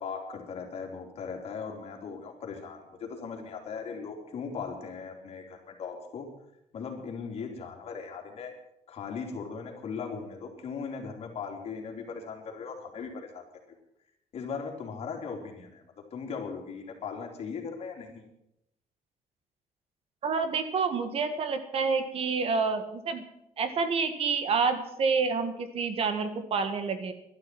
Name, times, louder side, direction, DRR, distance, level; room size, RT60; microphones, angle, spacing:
voice 1, 0.0-6.3 6.7-8.5 8.9-13.4 14.3-15.8 16.1-18.2, left 5 dB, 50° left, 2 dB, 3.3 m, -38 dB
voice 2, 20.2-23.2 23.6-27.1, right 5 dB, 45° right, 9 dB, 1.7 m, -28 dB
12.0 x 11.5 x 7.7 m, 0.79 s
cardioid pair, 145°, 13 cm